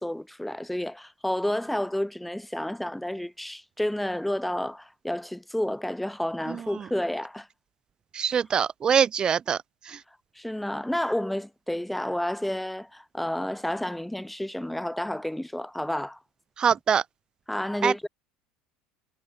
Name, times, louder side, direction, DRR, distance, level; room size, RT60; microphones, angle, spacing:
voice 1, 0.0-7.5 10.3-16.2 17.5-18.1, left 1 dB, 5° left, 4.8 m, -30 dB
voice 2, 8.1-9.6 16.6-17.0 17.8-18.1, right 7 dB, 35° right, 3.1 m, -23 dB
hypercardioid pair, 85°, 2 cm